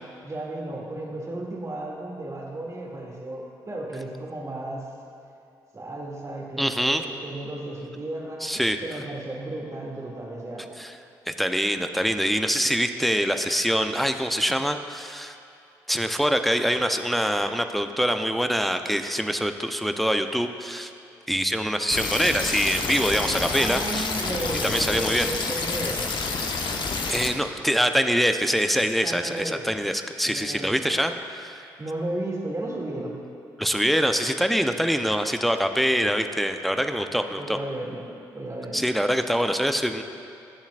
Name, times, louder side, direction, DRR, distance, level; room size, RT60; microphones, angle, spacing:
voice 1, 0.2-4.9 5.7-8.4 8.8-10.8 23.5-26.0 29.0-29.7 30.2-31.0 31.6-33.2 37.4-38.0 38.3-38.9, right 1 dB, 35° right, -2 dB, 2.4 m, -34 dB
voice 2, 6.6-7.0 8.4-8.8 10.8-11.0 11.3-15.4 15.9-20.9 21.3-24.1 24.6-25.3 27.1-31.6 33.6-37.6 38.7-40.0, equal, ahead, 7 dB, 0.7 m, -24 dB
sound 1, 21.9-27.3, left 4 dB, 50° left, 1.1 m, -28 dB
19.5 x 7.2 x 2.5 m, 2.6 s
hypercardioid pair, 45°, 10 cm